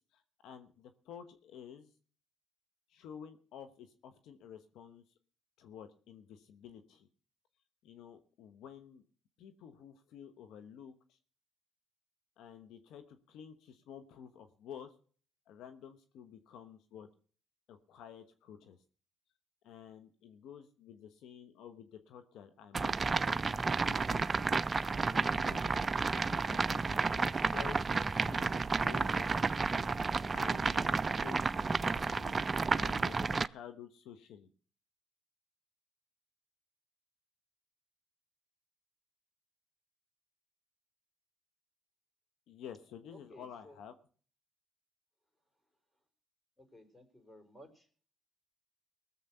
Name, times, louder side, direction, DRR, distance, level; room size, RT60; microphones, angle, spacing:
voice 1, 0.1-1.9 2.9-5.0 5.6-7.1 7.8-9.0 9.4-11.2 12.4-14.9 15.5-17.1 17.7-18.8 19.6-24.5 25.1-29.2 30.3-32.4 32.7-34.5 42.5-43.9, left 8 dB, 75° left, 7 dB, 1.1 m, -51 dB
sound 1, 22.7-33.5, right 4 dB, 35° right, 0.5 m, -31 dB
voice 2, 43.3-43.8 46.6-47.9, left 1 dB, 10° left, 5 dB, 4.4 m, -57 dB
19.5 x 7.4 x 5.6 m, 0.43 s
supercardioid pair, 60°, 0 cm